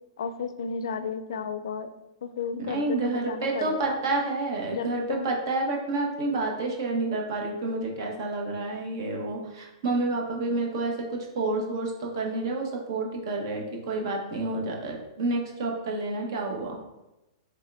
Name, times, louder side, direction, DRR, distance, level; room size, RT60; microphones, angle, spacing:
voice 1, 0.2-1.9 2.2-4.0 4.7-5.3, left 6 dB, 80° left, 11 dB, 0.4 m, -33 dB
voice 2, 2.6-16.8, right 2 dB, 55° right, 1 dB, 1.1 m, -29 dB
3.6 x 3.6 x 3.3 m, 0.97 s
hypercardioid pair, 160°, 3 cm